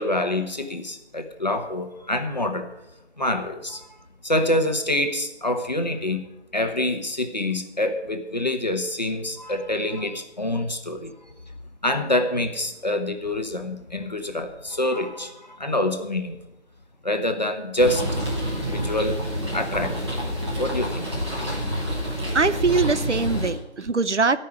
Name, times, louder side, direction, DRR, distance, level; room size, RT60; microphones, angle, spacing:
voice 1, 0.0-2.7 3.2-3.8 4.2-6.2 6.5-11.1 11.8-16.4 17.0-18.0 18.3-19.2 19.5-20.0 20.6-21.5, left 1 dB, 40° left, 6 dB, 1.1 m, -26 dB
sound 1, 17.8-23.5, equal, 25° right, 2.6 m, -28 dB
voice 2, 22.3-24.4, right 4 dB, 80° right, 14 dB, 0.8 m, -22 dB
14.0 x 5.6 x 9.5 m, 0.93 s
figure-of-eight pair, 170°, 35 cm